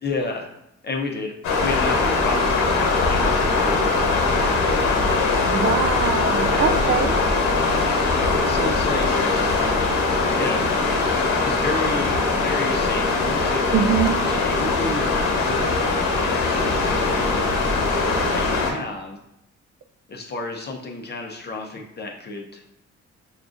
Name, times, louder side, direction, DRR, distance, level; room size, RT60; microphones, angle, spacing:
voice 1, 0.0-0.5 0.8-1.4 1.6-4.6 6.5-6.9 8.4-9.2 10.4-10.7 11.4-15.8 16.2-17.6 18.2-19.2 20.1-22.6, left 3 dB, 35° left, 1 dB, 0.6 m, -31 dB
sound 1, 1.4-18.7, left 3 dB, 80° left, 1.1 m, -21 dB
voice 2, 5.5-7.2 13.7-14.2, right 7 dB, 45° right, 8 dB, 0.4 m, -23 dB
6.0 x 2.4 x 2.5 m, 0.81 s
cardioid pair, 90°, 30 cm